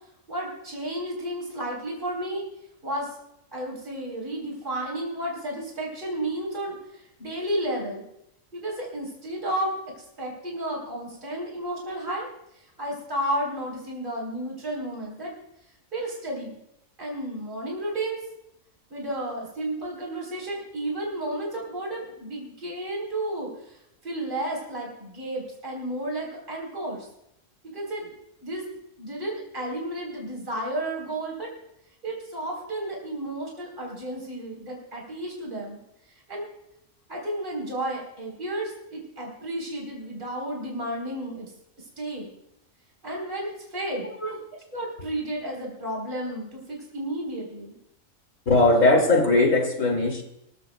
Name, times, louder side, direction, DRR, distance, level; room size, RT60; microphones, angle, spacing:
voice 1, 0.3-2.5 2.8-3.2 3.5-8.0 8.5-12.3 12.5-15.3 15.9-16.6 17.0-18.2 18.9-27.1 27.6-28.1 28.4-28.7 29.0-31.5 32.0-35.8 36.1-36.5 37.1-41.5 41.8-42.3 43.0-44.1 44.7-47.8, right 1 dB, 35° right, -2 dB, 4.0 m, -32 dB
voice 2, 48.5-50.2, left 2 dB, 65° left, 2 dB, 3.1 m, -19 dB
25.0 x 14.5 x 2.3 m, 0.79 s
omnidirectional pair, 1.5 m